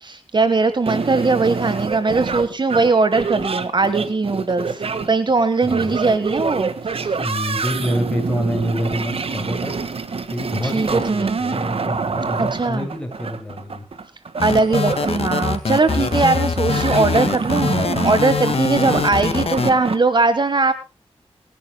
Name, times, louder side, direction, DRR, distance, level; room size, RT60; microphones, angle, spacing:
voice 1, 0.0-7.1 10.6-11.4 12.4-12.9 14.4-20.7, right 3 dB, 45° right, 11 dB, 1.4 m, -20 dB
sound 1, 0.9-20.0, right 4 dB, 65° right, 1.6 m, -26 dB
voice 2, 5.6-6.0 7.2-9.8 10.3-13.8 16.1-16.5, equal, 10° left, 2 dB, 7.4 m, -27 dB
sound 2, 14.4-19.7, left 5 dB, 70° left, 1.9 m, -22 dB
26.0 x 11.0 x 2.2 m, 0.29 s
cardioid pair, 65°, 11 cm